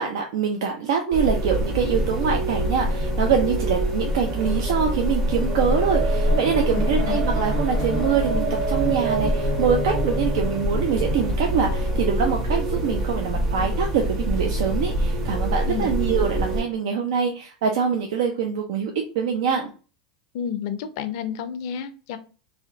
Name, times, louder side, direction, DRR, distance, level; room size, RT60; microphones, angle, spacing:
voice 1, 0.0-19.7, right 7 dB, 70° right, 3 dB, 0.4 m, -24 dB
sound 1, 1.1-16.6, right 1 dB, 40° right, 1.3 m, -24 dB
voice 2, 6.7-7.2 15.7-15.9 20.3-22.2, left 8 dB, 65° left, 10 dB, 0.4 m, -30 dB
2.7 x 2.1 x 2.5 m, 0.36 s
hypercardioid pair, 95°, 3 cm